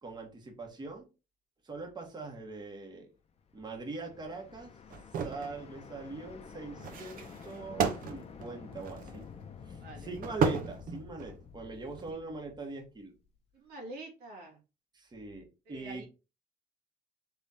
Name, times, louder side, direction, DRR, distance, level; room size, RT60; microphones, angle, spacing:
voice 1, 0.0-1.1 1.6-3.1 3.5-4.7 5.2-9.2 9.6-13.1 14.9-16.1, right 3 dB, 25° right, 1 dB, 1.4 m, -42 dB
sound 1, 3.4-13.4, left 6 dB, 35° left, 0.7 m, -50 dB
sound 2, 4.9-5.5 6.8-9.3 10.2-11.4 11.9-12.1, right 5 dB, 55° right, 0.9 m, -33 dB
voice 2, 13.5-14.6 15.7-16.1, right 2 dB, 80° right, 0 dB, 1.9 m, -46 dB
3.7 x 3.5 x 4.2 m, 0.29 s
cardioid pair, 110°, 17 cm